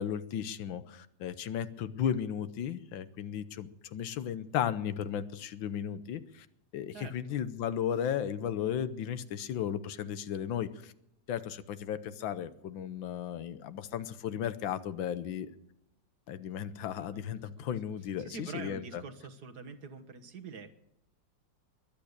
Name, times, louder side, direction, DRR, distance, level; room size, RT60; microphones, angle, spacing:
voice 1, 0.0-6.5 6.7-10.9 11.3-15.5 16.3-19.0, left 9 dB, 85° left, 13 dB, 1.6 m, -35 dB
voice 2, 6.9-7.4 17.0-17.7 18.2-20.7, right 5 dB, 60° right, 7 dB, 1.8 m, -46 dB
22.0 x 8.7 x 6.6 m, 0.80 s
omnidirectional pair, 2.1 m